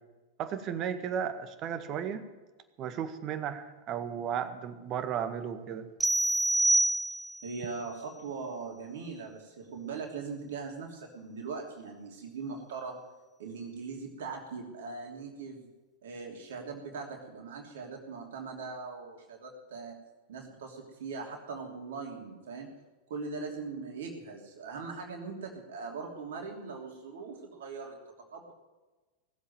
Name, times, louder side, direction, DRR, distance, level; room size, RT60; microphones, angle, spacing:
voice 1, 0.4-2.2 2.8-5.9, right 8 dB, 40° right, 9 dB, 1.8 m, -34 dB
sound 1, 6.0-7.5, right 1 dB, 5° right, 0.4 m, -26 dB
voice 2, 7.4-13.0 13.4-15.6 16.0-20.0 20.3-22.7 23.1-28.0 28.3-28.5, right 4 dB, 65° right, 1 dB, 3.0 m, -40 dB
18.5 x 8.2 x 9.3 m, 1.2 s
figure-of-eight pair, 95°, 0 cm